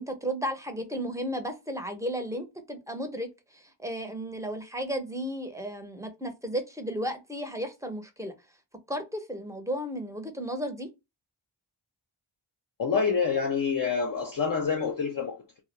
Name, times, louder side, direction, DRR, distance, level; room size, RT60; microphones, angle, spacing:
voice 1, 0.0-8.3 8.9-10.9, equal, 5° right, 0.6 m, -34 dB
voice 2, 12.8-15.6, left 5 dB, 45° left, 0.5 m, -27 dB
2.2 x 2.1 x 3.1 m
wide cardioid pair, 65°, 48 cm